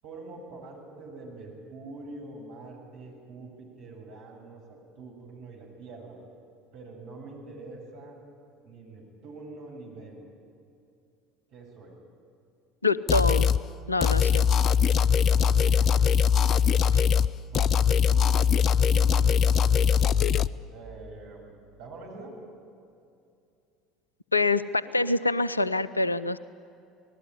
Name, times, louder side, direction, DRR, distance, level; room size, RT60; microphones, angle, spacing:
voice 1, 0.0-6.2 6.7-8.2 8.6-10.3 11.5-12.0 15.0-16.2 16.6-17.1 17.5-18.5 18.9-20.0 20.3-22.4, right 2 dB, 55° right, -1 dB, 7.5 m, -45 dB
voice 2, 12.8-13.5 13.9-14.5 16.9-17.0 24.3-26.4, left 3 dB, 85° left, 18 dB, 0.6 m, -25 dB
sound 1, 13.1-13.6 14.0-17.3 17.5-20.5, left 7 dB, 40° left, 0.5 m, -21 dB
28.0 x 19.5 x 9.8 m, 2.5 s
figure-of-eight pair, 70°, 0 cm